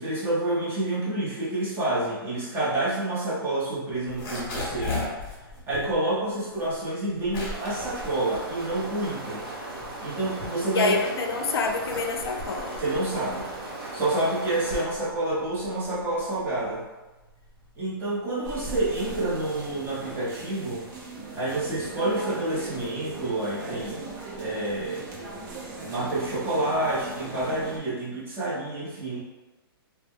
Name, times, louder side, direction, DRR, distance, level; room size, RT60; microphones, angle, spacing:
voice 1, 0.0-5.1 5.7-9.5 10.0-10.9 12.8-13.5 13.9-16.8 17.8-20.9 21.3-25.1 25.8-29.2, right 2 dB, 15° right, -8 dB, 0.8 m, -28 dB
sound 1, 4.0-9.2 9.6-11.0 11.5-20.3, left 2 dB, 30° left, 1.0 m, -38 dB
sound 2, 7.5-14.8, right 2 dB, 75° right, 1.0 m, -37 dB
voice 2, 10.7-12.8, left 4 dB, 75° left, 3 dB, 0.4 m, -27 dB
sound 3, 18.4-27.8, right 2 dB, 50° right, 0.7 m, -39 dB
2.2 x 2.1 x 3.5 m, 1.2 s
hypercardioid pair, 150°, 13 cm